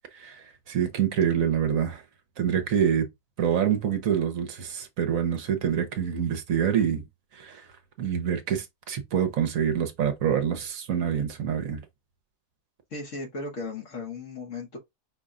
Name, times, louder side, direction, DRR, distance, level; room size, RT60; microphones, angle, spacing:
voice 1, 0.1-2.0 2.4-3.1 3.4-7.0 7.3-7.6 8.0-11.8, right 8 dB, 60° right, 1.1 m, -26 dB
voice 2, 12.9-14.8, left 3 dB, 55° left, 1.4 m, -36 dB
5.5 x 2.2 x 3.6 m
omnidirectional pair, 1.7 m